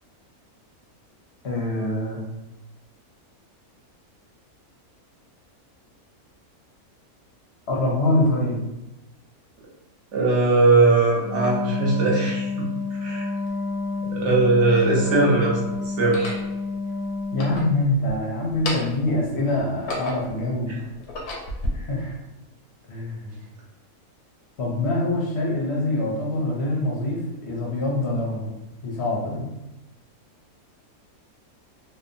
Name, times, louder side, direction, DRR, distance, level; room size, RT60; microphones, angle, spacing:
voice 1, 1.4-2.2 7.7-8.6 17.3-20.8 21.7-22.1 22.9-23.3 24.6-28.5 28.8-29.5, left 1 dB, 60° left, -3 dB, 0.7 m, -25 dB
voice 2, 10.1-12.5 13.0-13.2 14.0-15.6 16.0-16.4, right 3 dB, 60° right, -3 dB, 1.0 m, -19 dB
Wind instrument woodwind instrument, 11.1-17.6, left 4 dB, 35° right, 0.6 m, -29 dB
sound 1, 13.5-13.6 14.4-15.2 16.0-16.5 17.2-18.2 18.5-19.1 19.6-20.4 20.9-21.7, left 2 dB, 90° left, 1.1 m, -32 dB
2.8 x 2.1 x 2.5 m, 0.98 s
omnidirectional pair, 1.6 m